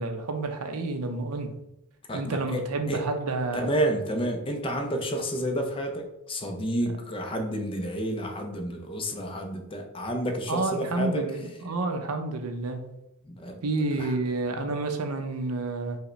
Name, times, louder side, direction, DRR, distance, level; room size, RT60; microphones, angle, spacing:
voice 1, 0.0-1.5 2.1-3.6 10.5-12.9 13.6-16.0, right 2 dB, 80° right, 5 dB, 0.6 m, -29 dB
voice 2, 2.1-3.0 3.5-11.2 13.3-13.6 14.0-14.1, right 1 dB, 25° left, 4 dB, 0.4 m, -30 dB
4.8 x 2.1 x 3.1 m, 0.84 s
head